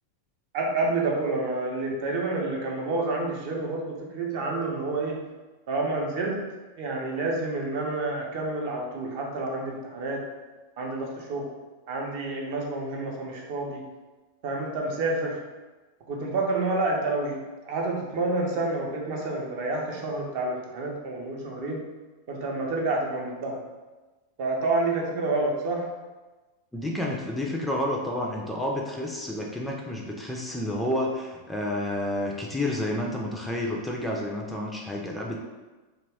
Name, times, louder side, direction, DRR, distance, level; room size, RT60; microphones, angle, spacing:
voice 1, 0.5-5.2 5.7-6.4 6.7-10.2 10.8-11.5 11.9-13.8 14.4-15.4 16.1-21.8 22.3-23.6 24.4-25.9, right 2 dB, 50° right, -1 dB, 0.5 m, -29 dB
voice 2, 26.7-35.4, left 1 dB, 5° left, -1 dB, 0.4 m, -30 dB
2.3 x 2.2 x 3.4 m, 1.2 s
figure-of-eight pair, 90°, 0 cm